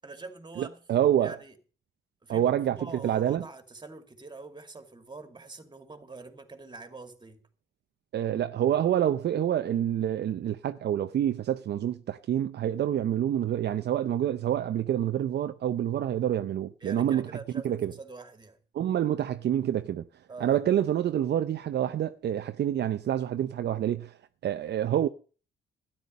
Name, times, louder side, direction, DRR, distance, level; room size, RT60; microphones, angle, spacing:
voice 1, 0.0-0.8 1.2-1.6 2.2-7.4 16.8-18.6 20.3-20.6, right 3 dB, 20° right, 2.4 m, -45 dB
voice 2, 0.6-1.4 2.3-2.8 3.0-3.4 8.1-17.3 17.6-17.9 18.7-20.0 20.4-24.2 24.4-25.1, right 10 dB, 60° right, 0.7 m, -27 dB
13.0 x 10.0 x 5.3 m
cardioid pair, 90°, 20 cm